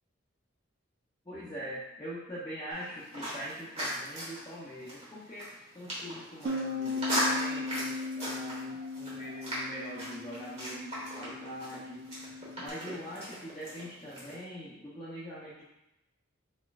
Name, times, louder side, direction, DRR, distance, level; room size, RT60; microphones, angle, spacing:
voice 1, 1.2-12.0 12.6-15.7, equal, 20° left, -10 dB, 0.7 m, -43 dB
sound 1, 2.7-14.4, equal, 30° right, 1.3 m, -38 dB
Bass guitar, 6.5-12.7, left 3 dB, 80° right, 0.3 m, -38 dB
4.4 x 4.2 x 2.4 m, 0.92 s
head